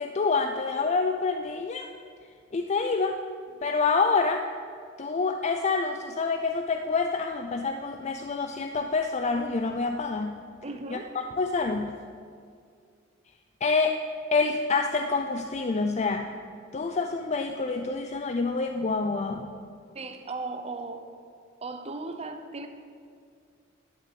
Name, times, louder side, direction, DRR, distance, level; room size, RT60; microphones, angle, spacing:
voice 1, 0.0-1.9 2.5-3.2 3.6-4.4 5.0-10.4 10.9-11.0 11.4-12.0 13.6-14.0 14.3-16.3 16.7-19.5, left 4 dB, 35° left, 5 dB, 0.4 m, -27 dB
voice 2, 10.6-11.1 19.9-21.1 21.6-22.7, right 3 dB, 30° right, 6 dB, 0.7 m, -36 dB
11.0 x 6.0 x 8.5 m, 2.2 s
head